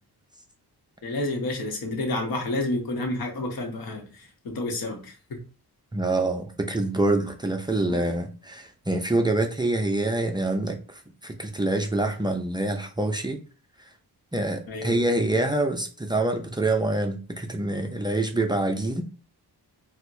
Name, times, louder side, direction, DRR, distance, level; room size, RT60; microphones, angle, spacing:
voice 1, 1.0-5.1 7.9-8.0 14.7-14.9, left 2 dB, 60° left, 1.0 m, -30 dB
voice 2, 5.9-13.4 14.3-19.0, right 2 dB, 10° right, 0.4 m, -26 dB
4.3 x 2.1 x 2.6 m
wide cardioid pair, 120°, 40 cm